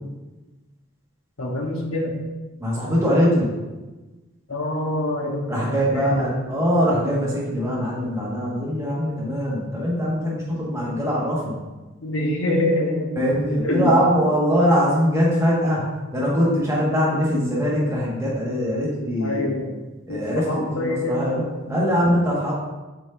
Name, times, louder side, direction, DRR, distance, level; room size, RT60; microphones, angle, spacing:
voice 1, 1.4-2.1 4.5-6.3 12.0-13.2 13.6-14.0 19.2-19.8 20.1-22.0, left 1 dB, 90° left, 0 dB, 1.2 m, -25 dB
voice 2, 2.6-3.5 5.5-11.6 13.2-15.8 16.1-19.5 20.1-21.4 21.7-22.5, equal, 15° right, -6 dB, 1.6 m, -22 dB
7.8 x 5.0 x 2.6 m, 1.2 s
head